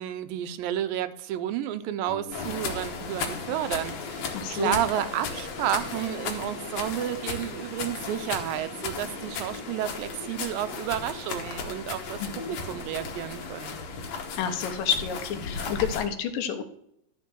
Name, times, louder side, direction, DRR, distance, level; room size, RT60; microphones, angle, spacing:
voice 1, 0.0-12.2 12.5-13.8, right 11 dB, 85° right, 12 dB, 2.4 m, -31 dB
sound 1, 2.0-11.4, left 2 dB, 25° left, 1.4 m, -51 dB
sound 2, 2.3-16.1, left 5 dB, 60° left, 2.2 m, -35 dB
voice 2, 4.3-4.8 12.2-12.6 14.4-16.6, left 7 dB, 80° left, 7 dB, 2.5 m, -29 dB
Insect, 5.1-12.3, right 6 dB, 70° right, 1.8 m, -50 dB
12.0 x 4.5 x 6.0 m, 0.73 s
omnidirectional pair, 4.0 m